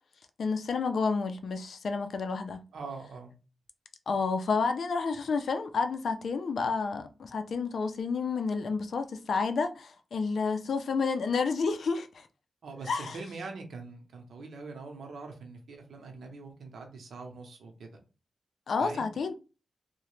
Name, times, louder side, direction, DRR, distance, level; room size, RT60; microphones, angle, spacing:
voice 1, 0.4-2.6 4.1-12.3 12.9-13.2 18.7-19.3, left 4 dB, 60° left, 0.4 m, -30 dB
voice 2, 2.7-3.3 12.6-17.9 18.8-19.1, right 3 dB, 85° right, 0.7 m, -43 dB
2.8 x 2.1 x 3.1 m
wide cardioid pair, 165°, 0 cm